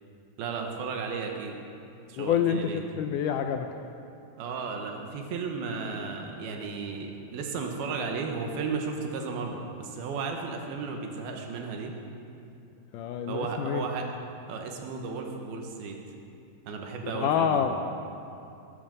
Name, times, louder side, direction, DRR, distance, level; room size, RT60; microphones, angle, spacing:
voice 1, 0.4-1.6 2.1-2.8 4.4-11.9 13.3-14.1 14.5-16.0 16.7-17.7, right 4 dB, 90° right, 2 dB, 3.3 m, -34 dB
voice 2, 2.2-3.7 12.9-13.8 17.1-17.8, left 8 dB, 80° left, 6 dB, 1.9 m, -27 dB
20.5 x 11.5 x 5.4 m, 2.6 s
omnidirectional pair, 4.2 m